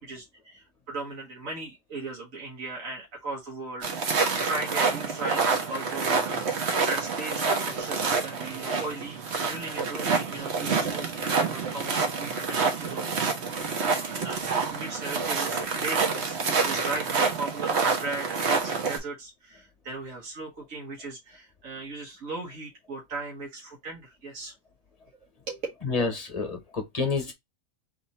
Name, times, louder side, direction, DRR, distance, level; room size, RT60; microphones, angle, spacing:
voice 1, 0.0-6.6 6.8-13.6 14.1-14.4 14.7-24.5 25.5-25.6, right 3 dB, 75° right, 1.6 m, -38 dB
sound 1, 3.8-19.0, right 4 dB, 55° right, 1.2 m, -27 dB
voice 2, 25.8-27.3, left 4 dB, 30° left, 1.1 m, -28 dB
3.5 x 2.8 x 4.1 m
omnidirectional pair, 1.4 m